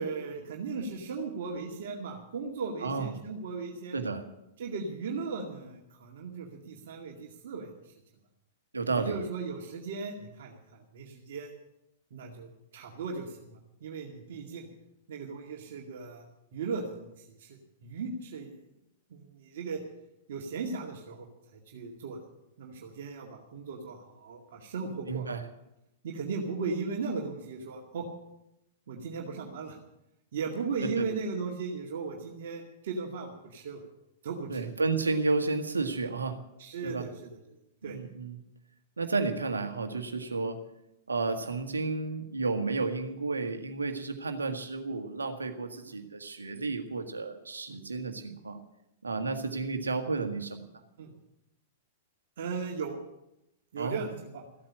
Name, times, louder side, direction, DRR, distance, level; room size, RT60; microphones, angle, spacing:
voice 1, 0.0-4.0 4.6-7.9 8.9-11.5 12.1-14.7 15.1-16.3 16.5-18.6 19.1-19.8 20.3-21.3 21.5-22.2 22.6-25.3 26.0-28.1 28.9-29.8 30.3-33.8 34.2-34.8 36.6-38.0 45.9-46.0 47.7-47.8 51.0-51.1 52.4-53.0 53.7-54.5, right 4 dB, 60° right, 0 dB, 2.1 m, -37 dB
voice 2, 3.9-4.2 8.7-9.2 25.1-25.4 30.8-31.1 34.5-36.4 36.8-37.0 37.8-38.4 39.0-40.6 41.1-48.6 49.0-50.6 53.8-54.0, right 3 dB, 85° right, 6 dB, 1.7 m, -32 dB
15.0 x 8.7 x 8.8 m, 0.87 s
figure-of-eight pair, 105°, 0 cm